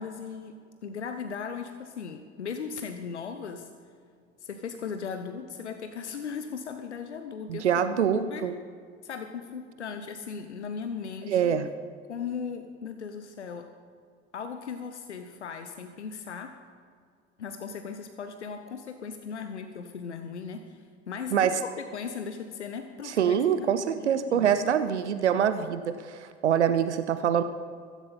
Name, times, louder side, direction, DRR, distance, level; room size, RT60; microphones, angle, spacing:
voice 1, 0.0-3.7 4.4-7.7 8.1-8.5 9.0-11.4 12.1-13.7 14.3-16.6 17.4-23.7 24.0-24.5, left 6 dB, 85° left, 8 dB, 0.7 m, -37 dB
voice 2, 7.5-8.5 11.3-11.7 21.3-21.6 23.0-27.4, right 8 dB, 85° right, 12 dB, 0.6 m, -25 dB
15.0 x 14.5 x 4.2 m, 2.2 s
figure-of-eight pair, 60°, 34 cm